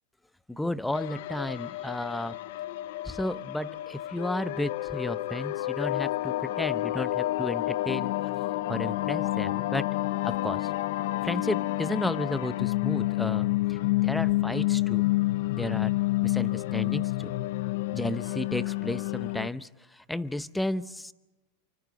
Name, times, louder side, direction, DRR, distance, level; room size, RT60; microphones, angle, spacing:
voice 1, 0.5-2.4 3.0-8.1 8.7-9.9 10.2-10.7 11.2-15.1 15.5-15.9 16.2-17.4 17.9-21.1, left 1 dB, 5° left, 14 dB, 0.8 m, -33 dB
sound 1, 0.9-19.5, left 17 dB, 65° left, 0.6 m, -29 dB
29.5 x 24.5 x 4.1 m, 1.1 s
supercardioid pair, 130°, 0 cm